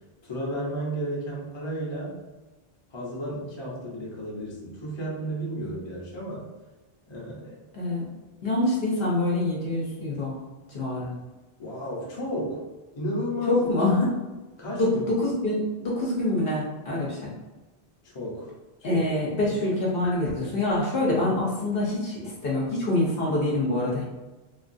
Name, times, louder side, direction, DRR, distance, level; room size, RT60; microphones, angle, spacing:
voice 1, 0.2-2.2 2.9-6.5 7.1-7.6 11.6-12.6 12.9-13.7 14.6-14.8 18.0-18.5 18.9-19.0 19.4-19.6, equal, 30° left, -5 dB, 0.7 m, -33 dB
voice 2, 7.7-8.1 8.4-10.4 10.7-11.1 13.5-14.1 14.8-17.3 18.8-24.0, left 2 dB, 65° left, -4 dB, 0.9 m, -25 dB
3.3 x 2.3 x 2.5 m, 1.2 s
omnidirectional pair, 1.1 m